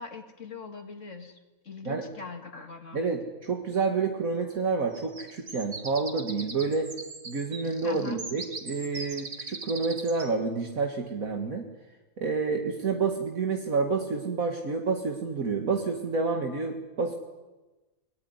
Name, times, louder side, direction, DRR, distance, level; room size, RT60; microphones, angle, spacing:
voice 1, 0.0-3.1 7.8-8.2, left 4 dB, 55° left, 4 dB, 2.5 m, -42 dB
voice 2, 2.9-6.9 7.2-11.6 12.2-17.1, right 4 dB, 75° right, 3 dB, 2.3 m, -29 dB
sound 1, 4.9-10.3, right 3 dB, 50° right, 2.5 m, -40 dB
28.5 x 19.5 x 9.7 m, 1.1 s
omnidirectional pair, 1.5 m